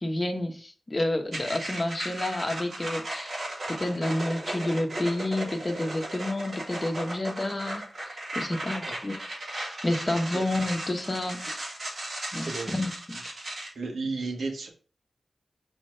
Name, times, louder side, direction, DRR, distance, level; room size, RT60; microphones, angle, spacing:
voice 1, 0.0-3.3 3.7-9.1 9.8-11.6 12.3-12.9, left 1 dB, 30° left, 1.2 m, -29 dB
sound 1, 1.3-13.7, right 1 dB, 50° right, 3.3 m, -36 dB
voice 2, 12.4-12.8 13.7-14.7, right 3 dB, 80° right, 1.6 m, -33 dB
6.1 x 4.5 x 3.4 m
wide cardioid pair, 75°, 0 cm